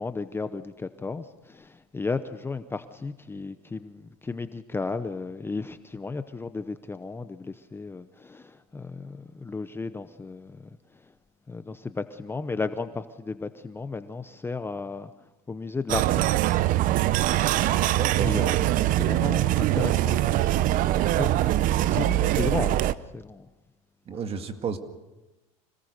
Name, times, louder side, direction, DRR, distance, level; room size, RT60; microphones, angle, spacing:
voice 1, 0.0-10.7 11.5-15.1 15.5-16.3 17.5-18.7 19.0-20.6 21.1-22.8 23.1-23.5, left 4 dB, 15° left, 11 dB, 0.8 m, -34 dB
sound 1, 15.9-22.9, right 14 dB, 50° right, 0.8 m, -23 dB
voice 2, 17.9-18.4 24.1-24.8, right 6 dB, 35° right, 8 dB, 2.1 m, -32 dB
26.0 x 18.5 x 6.7 m, 1.1 s
supercardioid pair, 115°, 18 cm